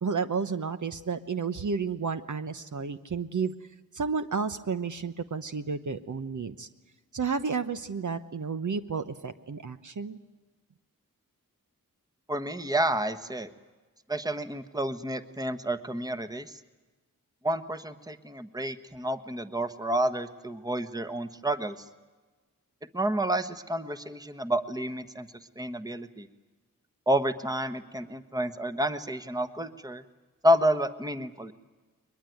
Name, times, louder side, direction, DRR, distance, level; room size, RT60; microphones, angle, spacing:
voice 1, 0.0-3.5 3.9-6.7 7.1-10.2, right 5 dB, 55° right, 10 dB, 1.0 m, -31 dB
voice 2, 12.3-13.5 14.1-16.5 17.4-21.7 22.9-25.3 25.6-26.3 27.1-30.0 30.4-31.5, right 1 dB, 10° right, 11 dB, 1.3 m, -29 dB
22.0 x 21.5 x 9.2 m, 1.3 s
cardioid pair, 60°, 35 cm